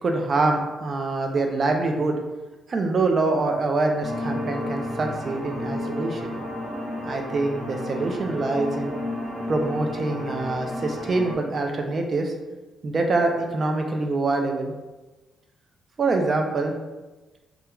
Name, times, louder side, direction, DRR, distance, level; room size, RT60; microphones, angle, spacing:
voice 1, 0.0-2.2 2.7-6.3 7.0-8.9 9.5-12.3 12.8-14.7 16.0-16.7, right 3 dB, 35° right, 3 dB, 0.3 m, -25 dB
sound 1, 4.0-11.3, left 1 dB, 5° left, 1.0 m, -32 dB
2.3 x 2.2 x 2.9 m, 1.1 s
cardioid pair, 160°, 0 cm